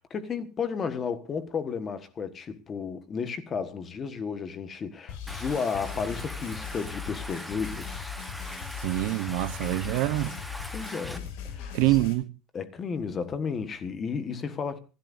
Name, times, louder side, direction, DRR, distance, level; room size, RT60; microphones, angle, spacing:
voice 1, 0.0-8.1 10.7-12.0 12.5-14.8, left 6 dB, 20° left, 1.3 m, -33 dB
sound 1, 5.1-12.1, left 7 dB, 75° left, 5.6 m, -39 dB
Stream, 5.3-11.2, equal, ahead, 1.0 m, -41 dB
voice 2, 8.8-10.3 11.7-12.2, right 17 dB, 65° right, 0.8 m, -25 dB
27.5 x 12.0 x 2.6 m
cardioid pair, 175°, 0 cm